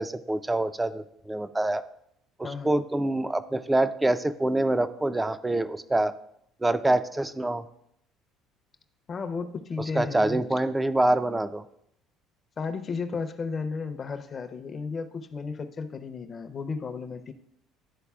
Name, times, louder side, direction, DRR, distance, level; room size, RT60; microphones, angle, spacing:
voice 1, 0.0-1.8 2.4-6.1 6.6-7.7 9.9-11.6, right 2 dB, 10° right, 12 dB, 0.4 m, -26 dB
voice 2, 2.4-2.8 9.1-10.4 12.6-17.3, left 5 dB, 35° left, 9 dB, 0.7 m, -34 dB
11.0 x 4.0 x 2.4 m, 0.74 s
supercardioid pair, 95°, 0 cm